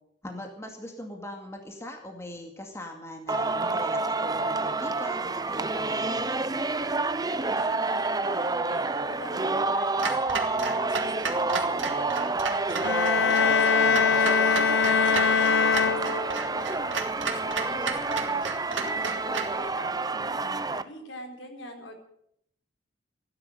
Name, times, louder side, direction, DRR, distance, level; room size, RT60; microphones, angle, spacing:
voice 1, 0.2-6.3, left 1 dB, 15° left, 2 dB, 2.2 m, -41 dB
Singing, 3.3-20.8, right 3 dB, 20° right, 0.7 m, -28 dB
voice 2, 7.4-10.1 10.5-18.4 18.8-21.9, equal, 80° left, 3 dB, 4.2 m, -44 dB
Clock, 10.0-19.6, right 4 dB, 75° right, 2.2 m, -34 dB
sound 1, 12.8-16.6, left 6 dB, 65° left, 0.7 m, -23 dB
16.5 x 11.0 x 7.8 m, 0.72 s
head